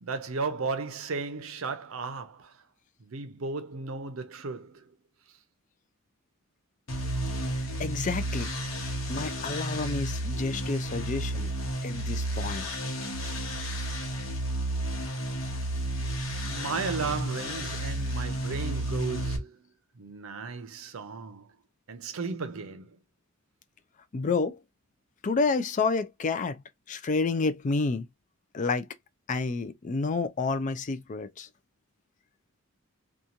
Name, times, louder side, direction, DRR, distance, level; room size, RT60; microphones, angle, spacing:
voice 1, 0.0-2.6 3.0-4.9 16.4-19.7 20.0-21.5 21.9-23.0, right 4 dB, 75° right, 0.6 m, -35 dB
sound 1, 6.9-19.4, right 1 dB, 70° left, 1.0 m, -32 dB
voice 2, 7.5-8.5 9.1-11.5 11.8-12.7 24.1-24.6 25.2-26.6 26.9-28.1 28.5-28.9 29.3-31.5, left 4 dB, 35° left, 0.4 m, -29 dB
2.9 x 2.3 x 2.5 m
head